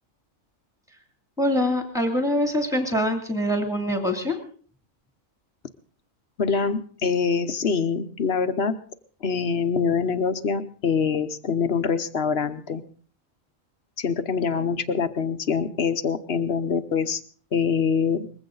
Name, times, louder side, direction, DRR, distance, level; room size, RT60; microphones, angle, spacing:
voice 1, 1.4-4.4, left 1 dB, ahead, 4 dB, 2.6 m, -24 dB
voice 2, 6.4-8.7 9.2-12.8 14.0-17.2 17.5-18.3, left 6 dB, 50° left, 10 dB, 1.1 m, -24 dB
21.0 x 15.5 x 3.9 m, 0.43 s
omnidirectional pair, 1.4 m